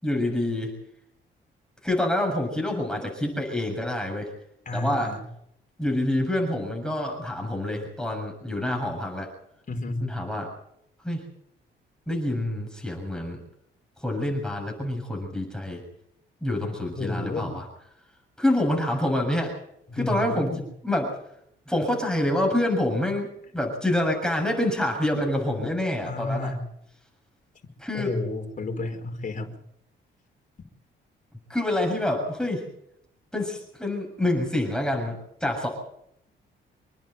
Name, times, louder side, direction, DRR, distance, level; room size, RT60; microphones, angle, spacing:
voice 1, 0.0-0.7 1.8-4.3 4.7-5.1 5.8-9.3 10.0-10.5 11.0-11.2 12.1-13.4 14.0-15.8 16.4-17.7 18.4-19.5 19.9-20.5 20.8-21.2 21.7-26.6 27.8-28.1 31.5-32.6 33.3-35.7, left 1 dB, 5° left, 1 dB, 7.2 m, -27 dB
voice 2, 4.6-5.2 9.7-10.1 16.9-17.5 19.9-20.6 26.0-26.6 27.9-29.5, left 2 dB, 40° left, 4 dB, 5.0 m, -31 dB
27.0 x 10.5 x 9.5 m, 0.75 s
cardioid pair, 90°, 20 cm